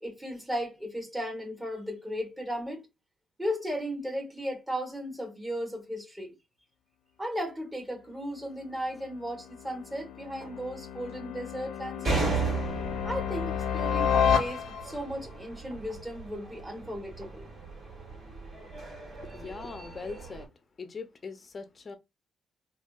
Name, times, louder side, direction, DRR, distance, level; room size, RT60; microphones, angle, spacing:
voice 1, 0.0-2.8 3.4-6.3 7.2-12.3 13.0-17.5, equal, 10° right, 1.3 m, -36 dB
sound 1, 8.7-15.1, left 7 dB, 85° left, 0.6 m, -31 dB
sound 2, 10.4-10.7 11.1-11.2 12.2-12.7 13.8-14.0 15.7-16.1 17.2-17.4 18.6-18.8, right 2 dB, 85° right, 1.0 m, -50 dB
sound 3, 12.0-20.5, right 4 dB, 50° right, 1.8 m, -36 dB
voice 2, 19.1-20.5 20.8-22.0, left 4 dB, 35° left, 0.6 m, -41 dB
3.5 x 2.3 x 2.3 m
cardioid pair, 90°, 0 cm